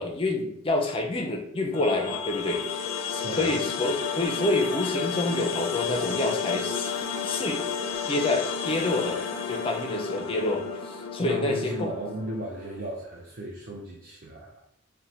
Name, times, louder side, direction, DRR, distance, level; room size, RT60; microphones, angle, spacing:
voice 1, 0.0-7.6 8.1-11.9, left 2 dB, 25° left, 3 dB, 0.4 m, -28 dB
sound 1, 1.7-12.8, left 6 dB, 85° left, 0.4 m, -32 dB
voice 2, 3.2-3.5 11.2-14.6, right 1 dB, 45° right, -3 dB, 0.5 m, -36 dB
4.3 x 2.1 x 2.7 m, 0.76 s
head